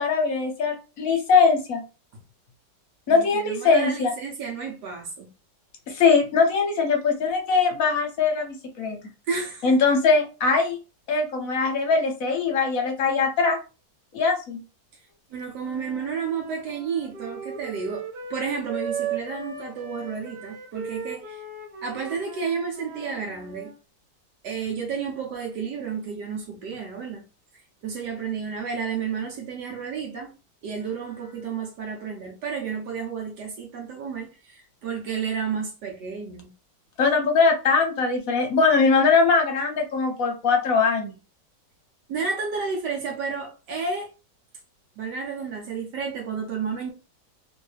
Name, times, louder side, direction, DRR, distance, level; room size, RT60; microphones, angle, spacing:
voice 1, 0.0-1.8 3.1-4.1 5.9-9.0 9.6-10.8 11.1-13.6 14.1-14.6 37.0-41.1, left 4 dB, 55° left, 1.1 m, -21 dB
voice 2, 3.1-5.3 9.3-9.7 15.3-21.4 21.8-23.7 24.4-27.2 27.8-30.3 30.6-36.5 42.1-44.1 45.0-46.9, right 6 dB, 70° right, 1.3 m, -31 dB
Wind instrument woodwind instrument, 15.6-23.7, right 5 dB, 40° right, 0.6 m, -37 dB
3.0 x 2.7 x 3.2 m
omnidirectional pair, 2.0 m